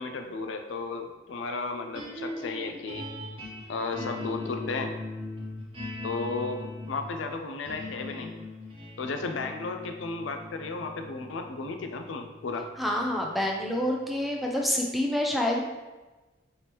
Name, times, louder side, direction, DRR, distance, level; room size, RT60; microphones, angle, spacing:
voice 1, 0.0-3.1 3.7-4.9 6.0-8.3 9.0-12.7, left 3 dB, 85° left, 6 dB, 0.5 m, -34 dB
sound 1, 1.9-14.2, left 2 dB, 30° right, 0.9 m, -40 dB
voice 2, 12.8-15.6, left 1 dB, ahead, 0 dB, 0.4 m, -27 dB
4.4 x 3.4 x 3.0 m, 1.2 s
head